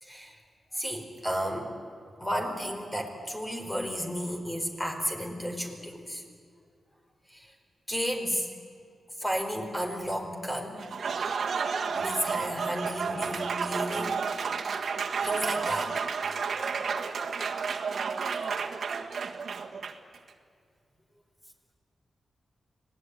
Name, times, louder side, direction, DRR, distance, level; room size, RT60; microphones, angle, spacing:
voice 1, 0.0-0.4 0.7-1.8 2.2-6.2 7.3-7.5 7.9-8.5 9.2-10.9 11.9-14.2 15.2-16.0, equal, 15° left, 3 dB, 4.6 m, -33 dB
Applause, 10.8-20.2, right 5 dB, 70° right, 1.7 m, -31 dB
25.5 x 17.5 x 10.0 m, 2.3 s
cardioid pair, 60°, 0 cm